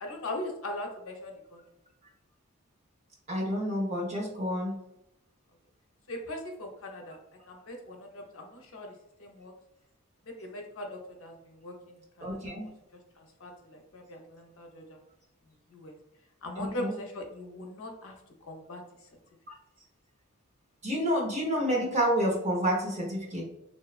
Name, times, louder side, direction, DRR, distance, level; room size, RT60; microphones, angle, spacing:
voice 1, 0.0-1.6 6.1-7.2 7.5-8.9 9.2-9.5 10.3-11.7 12.2-12.7 13.2-15.0 15.7-15.9 16.4-18.1 18.5-18.8, left 1 dB, 65° left, 2 dB, 0.6 m, -40 dB
voice 2, 3.3-4.8 12.2-12.7 16.6-16.9 20.8-23.4, equal, 30° right, -2 dB, 0.7 m, -29 dB
3.0 x 2.1 x 2.3 m, 0.84 s
head